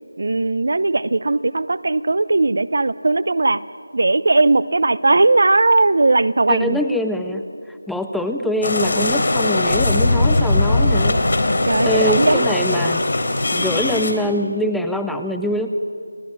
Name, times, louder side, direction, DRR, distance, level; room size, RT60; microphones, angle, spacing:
voice 1, 0.2-3.6 3.9-6.8 11.7-12.5, right 2 dB, 55° right, 17 dB, 0.8 m, -18 dB
voice 2, 6.5-7.4 7.7-11.2 11.9-13.0 13.5-15.7, left 1 dB, ahead, 5 dB, 0.6 m, -24 dB
sound 1, 8.6-14.1, left 2 dB, 50° left, 3.6 m, -19 dB
29.5 x 19.0 x 9.5 m, 2.4 s
figure-of-eight pair, 165°, 0 cm